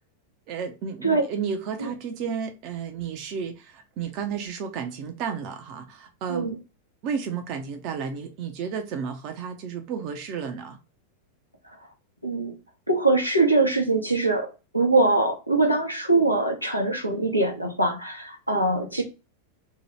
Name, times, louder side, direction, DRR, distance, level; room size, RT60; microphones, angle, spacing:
voice 1, 0.5-6.5 7.0-10.8, right 6 dB, 40° right, 0.5 m, -32 dB
voice 2, 12.2-12.6 12.9-14.5 14.7-19.0, right 2 dB, 90° right, 0.7 m, -22 dB
2.8 x 2.2 x 3.0 m
figure-of-eight pair, 90°, 0 cm